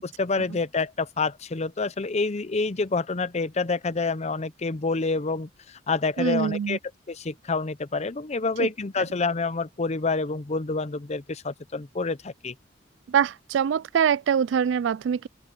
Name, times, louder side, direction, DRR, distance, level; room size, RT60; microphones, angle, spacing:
voice 1, 0.0-6.8 7.1-12.5, left 3 dB, 35° left, 0.7 m, -28 dB
voice 2, 6.2-6.8 8.6-8.7 13.1-15.3, right 8 dB, 70° right, 0.3 m, -24 dB
open air
head